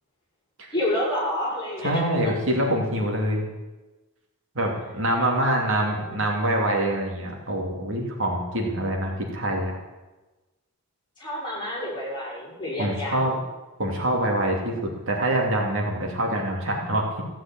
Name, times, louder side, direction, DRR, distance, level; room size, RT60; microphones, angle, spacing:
voice 1, 0.7-1.9 2.2-2.3 5.2-5.6 5.9-6.2 11.2-13.4, left 1 dB, 20° left, -5 dB, 6.4 m, -29 dB
voice 2, 1.8-3.4 4.5-9.7 12.8-13.3 13.8-17.2, right 1 dB, 60° right, 0 dB, 2.8 m, -25 dB
15.5 x 7.8 x 8.8 m, 1.1 s
head